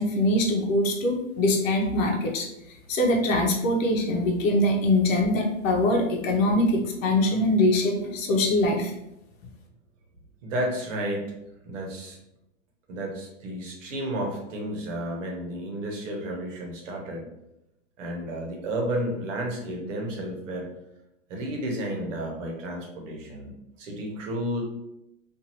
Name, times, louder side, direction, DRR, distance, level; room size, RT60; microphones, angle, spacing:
voice 1, 0.0-2.5 2.9-8.9, left 1 dB, 85° left, 0 dB, 0.8 m, -23 dB
voice 2, 10.4-11.3 11.7-12.2 12.9-17.2 18.0-20.7 21.3-24.6, right 1 dB, 75° right, 0 dB, 1.0 m, -32 dB
2.6 x 2.5 x 2.9 m, 0.87 s
supercardioid pair, 170°, 38 cm